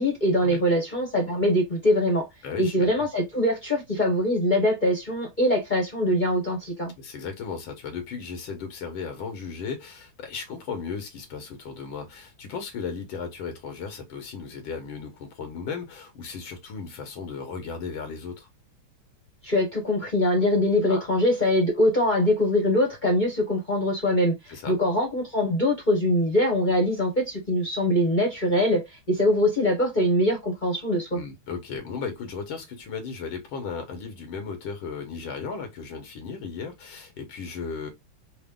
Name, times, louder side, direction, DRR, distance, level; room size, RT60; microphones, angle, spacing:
voice 1, 0.0-2.2 2.6-6.9 19.4-31.2, left 1 dB, 35° left, 0.8 m, -23 dB
voice 2, 2.4-3.1 7.0-18.5 20.9-21.1 24.5-24.7 31.1-37.9, left 5 dB, 90° left, 1.8 m, -35 dB
4.1 x 2.2 x 3.5 m
omnidirectional pair, 2.1 m